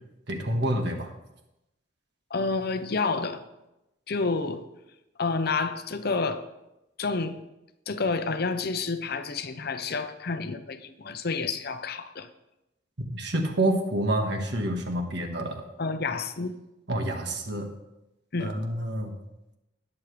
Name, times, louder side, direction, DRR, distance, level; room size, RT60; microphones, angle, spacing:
voice 1, 0.3-1.1 13.1-15.6 16.9-17.7 18.4-19.1, right 1 dB, 60° right, 3 dB, 1.6 m, -28 dB
voice 2, 2.3-3.4 4.1-4.7 5.2-6.5 7.0-7.4 7.9-12.3 15.8-16.6 18.3-18.5, left 4 dB, 55° left, 10 dB, 0.7 m, -29 dB
19.0 x 7.4 x 3.3 m, 0.92 s
head